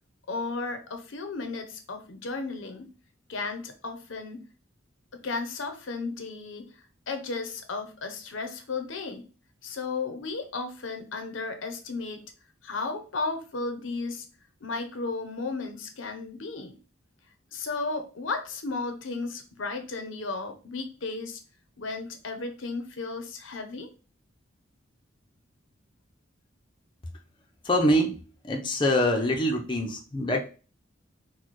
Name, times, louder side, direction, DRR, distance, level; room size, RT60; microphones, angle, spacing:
voice 1, 0.3-2.9 3.3-4.4 5.1-9.3 9.6-12.2 12.6-14.3 14.6-16.8 17.5-21.4 21.8-23.9, left 3 dB, 75° left, 7 dB, 0.7 m, -34 dB
voice 2, 27.6-30.4, equal, 25° left, 2 dB, 0.6 m, -25 dB
4.1 x 2.2 x 4.6 m, 0.35 s
head